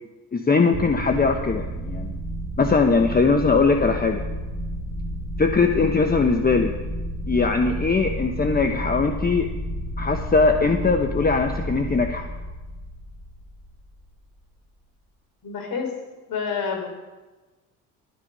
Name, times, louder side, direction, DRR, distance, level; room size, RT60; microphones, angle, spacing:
voice 1, 0.3-2.2 2.6-4.2 5.4-6.7 7.3-9.5 10.0-12.3, left 4 dB, 25° left, 5 dB, 1.1 m, -20 dB
sound 1, 0.7-14.0, equal, 10° right, 1.9 m, -31 dB
voice 2, 15.4-15.9 16.3-16.9, left 5 dB, 60° left, 3 dB, 4.0 m, -28 dB
12.5 x 10.0 x 5.5 m, 1.2 s
supercardioid pair, 75°, 39 cm